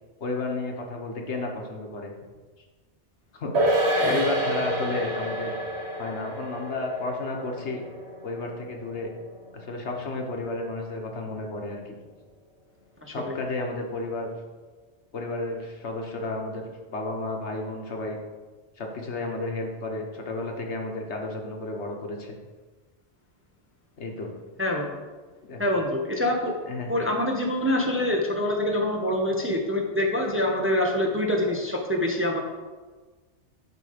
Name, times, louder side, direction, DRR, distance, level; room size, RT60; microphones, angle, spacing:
voice 1, 0.2-2.1 3.3-5.5 6.0-7.8 8.2-9.1 9.5-11.9 13.1-14.3 15.1-16.6 16.9-18.2 18.8-22.4 24.0-24.3 25.4-25.6 26.7-26.9, left 2 dB, 70° left, 1 dB, 1.5 m, -32 dB
sound 1, 3.5-10.2 10.5-10.6, right 1 dB, 65° right, 1.6 m, -29 dB
voice 2, 13.0-13.4 24.6-24.9 25.6-26.5 26.9-32.4, left 1 dB, 15° right, 1 dB, 0.6 m, -25 dB
11.0 x 3.9 x 5.1 m, 1.3 s
omnidirectional pair, 1.2 m